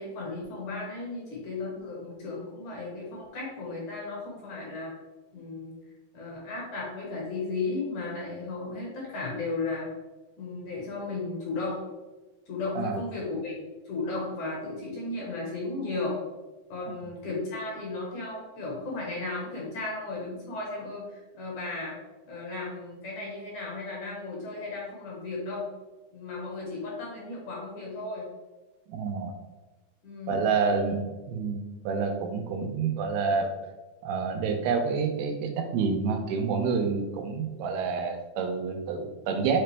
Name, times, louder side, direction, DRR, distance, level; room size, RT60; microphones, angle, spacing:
voice 1, 0.0-4.9 5.3-5.8 6.1-9.9 10.4-11.8 12.5-13.6 13.9-16.2 16.7-22.0 22.3-25.7 26.1-28.3 30.0-30.4, left 3 dB, 60° left, -3 dB, 2.4 m, -35 dB
voice 2, 28.9-29.3 30.3-33.5 34.0-39.6, right 5 dB, 85° right, 5 dB, 2.6 m, -28 dB
7.8 x 3.9 x 3.3 m, 1.2 s
omnidirectional pair, 4.6 m